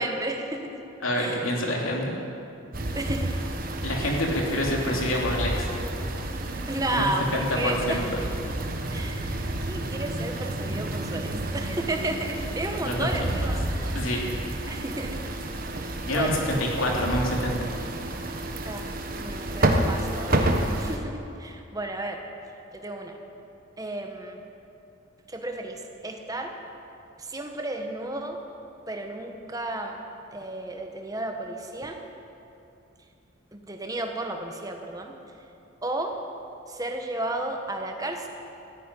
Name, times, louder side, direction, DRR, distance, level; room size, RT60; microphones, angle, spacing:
voice 1, 0.0-0.9 1.1-1.6 2.9-3.3 4.0-4.2 6.7-8.3 8.9-14.1 14.7-15.2 15.7-16.4 18.6-18.9 19.1-22.2 22.7-23.2 23.8-24.4 25.3-26.6 27.2-28.4 28.9-30.0 30.3-32.0 33.5-35.2 35.8-36.2 36.7-38.3, right 2 dB, 15° right, 3 dB, 1.3 m, -33 dB
voice 2, 1.0-2.2 3.8-5.7 6.9-7.0 7.3-8.0 12.8-13.1 13.9-14.2 16.1-17.7, left 1 dB, 80° left, -1 dB, 3.0 m, -27 dB
sound 1, 2.7-21.0, right 1 dB, 45° right, 1.2 m, -30 dB
14.0 x 10.5 x 9.8 m, 2.7 s
head